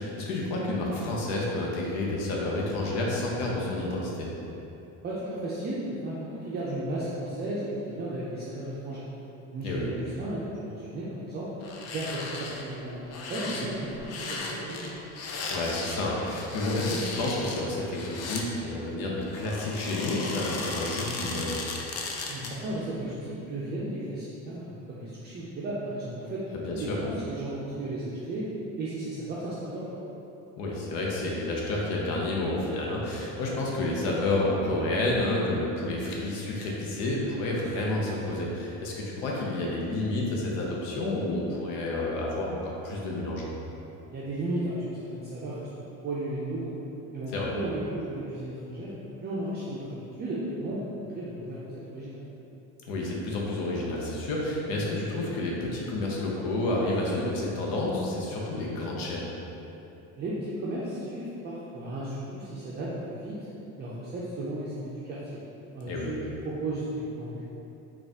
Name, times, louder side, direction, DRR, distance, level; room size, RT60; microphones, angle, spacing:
voice 1, 0.0-4.3 9.6-9.9 15.5-21.6 26.5-27.0 30.6-43.5 47.3-47.5 52.9-59.3 65.9-66.1, left 2 dB, 75° left, -3 dB, 0.8 m, -30 dB
voice 2, 5.0-9.0 9.5-11.5 11.9-15.0 22.3-28.5 28.8-30.0 44.1-45.7 46.0-46.8 47.1-48.9 49.2-52.2 60.2-63.5 63.8-65.2 65.7-67.5, right 1 dB, 30° right, -8 dB, 0.5 m, -34 dB
sound 1, 11.6-12.6 13.0-18.5 19.3-22.7 23.0-23.1, left 3 dB, 45° left, 0.5 m, -36 dB
4.0 x 2.4 x 3.5 m, 3.0 s
cardioid pair, 130°, 36 cm